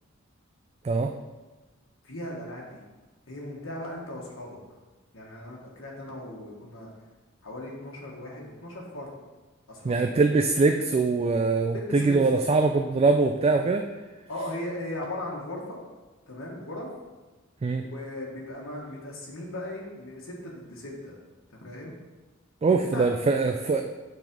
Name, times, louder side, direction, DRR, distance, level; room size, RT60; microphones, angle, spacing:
voice 1, 2.0-2.8 3.3-4.6 5.1-6.9 7.4-9.1 9.7-10.0 11.7-12.2 14.3-15.8 16.3-16.9 17.9-21.1 21.6-21.9 22.7-23.1, left 1 dB, 75° left, -3 dB, 1.4 m, -37 dB
voice 2, 9.8-13.8 17.6-17.8 22.6-23.8, right 3 dB, 30° right, 5 dB, 0.3 m, -23 dB
7.4 x 4.0 x 5.1 m, 1.2 s
head